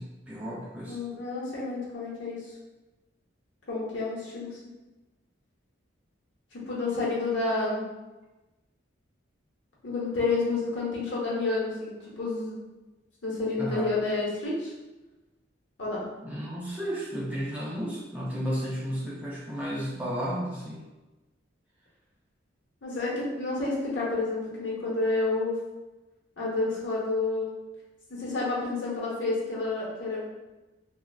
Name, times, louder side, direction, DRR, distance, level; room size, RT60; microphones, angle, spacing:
voice 1, 0.0-1.0 13.6-13.9 16.2-20.9, equal, 10° right, -6 dB, 0.4 m, -33 dB
voice 2, 0.9-2.5 3.7-4.6 6.5-7.9 9.8-12.6 13.2-14.7 15.8-16.0 22.8-25.6 26.4-27.5 28.1-30.3, left 3 dB, 65° left, -6 dB, 0.9 m, -29 dB
3.3 x 2.2 x 2.3 m, 1.1 s
head